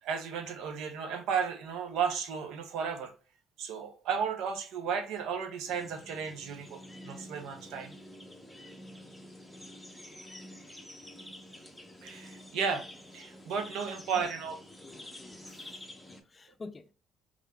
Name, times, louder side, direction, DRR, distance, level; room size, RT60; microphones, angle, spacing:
voice 1, 0.0-3.1 3.6-8.0 12.0-12.8 13.1-14.6, right 6 dB, 80° right, 0.7 m, -34 dB
sound 1, 5.7-16.2, left 1 dB, ahead, 0.8 m, -48 dB
voice 2, 14.8-15.8 16.1-16.9, left 3 dB, 25° left, 0.4 m, -48 dB
3.7 x 3.1 x 2.2 m
cardioid pair, 100°, 0 cm